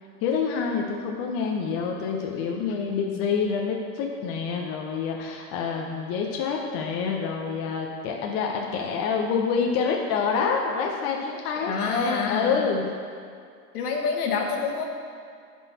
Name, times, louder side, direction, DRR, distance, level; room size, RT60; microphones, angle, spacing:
voice 1, 0.2-12.8, left 5 dB, 30° left, 0 dB, 0.7 m, -27 dB
voice 2, 11.6-12.7 13.7-14.8, left 5 dB, 65° left, 1 dB, 1.5 m, -27 dB
9.6 x 4.7 x 4.1 m, 2.3 s
hypercardioid pair, 115°, 48 cm